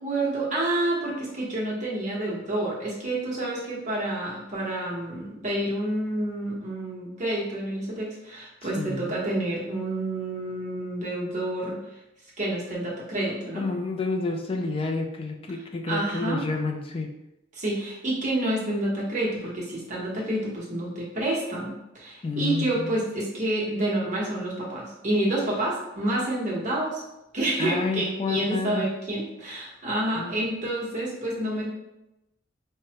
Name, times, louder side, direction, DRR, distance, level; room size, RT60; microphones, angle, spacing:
voice 1, 0.0-12.0 12.4-13.6 15.9-16.4 17.5-27.0 27.3-31.6, right 1 dB, 40° right, -4 dB, 0.9 m, -28 dB
voice 2, 8.6-9.2 13.3-17.1 22.2-23.0 27.6-28.9 30.2-30.4, left 3 dB, 25° left, 3 dB, 0.3 m, -30 dB
5.0 x 2.1 x 2.8 m, 0.91 s
head